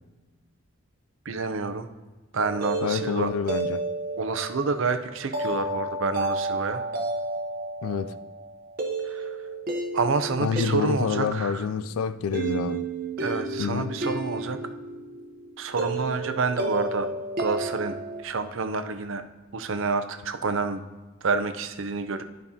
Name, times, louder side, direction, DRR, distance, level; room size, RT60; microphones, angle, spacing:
voice 1, 1.3-1.9 2.3-3.3 4.2-6.8 9.0-9.4 9.9-11.7 13.2-14.6 15.6-17.1 17.4-18.0 18.2-19.2 19.5-20.8 21.2-22.2, right 4 dB, 65° right, 0.6 m, -28 dB
sound 1, 2.4-18.2, right 2 dB, 40° right, 0.9 m, -32 dB
voice 2, 2.8-3.8 7.8-8.2 10.4-12.9 13.6-13.9, left 6 dB, 85° left, 0.4 m, -28 dB
12.0 x 5.3 x 2.8 m
head